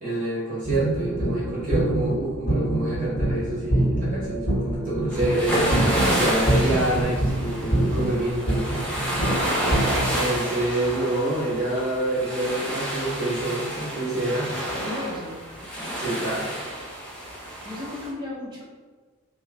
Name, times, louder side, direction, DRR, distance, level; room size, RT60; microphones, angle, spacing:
voice 1, 0.0-5.6 6.1-8.8 10.2-14.5 16.0-16.5, right 1 dB, 35° right, -9 dB, 1.3 m, -27 dB
sound 1, 0.6-10.1, right 1 dB, 60° left, 1.3 m, -25 dB
sound 2, 5.1-18.1, right 1 dB, 5° left, 0.7 m, -29 dB
voice 2, 9.1-9.6 14.9-15.4 17.6-18.6, left 1 dB, 20° right, -5 dB, 1.0 m, -34 dB
4.7 x 2.2 x 4.2 m, 1.4 s
head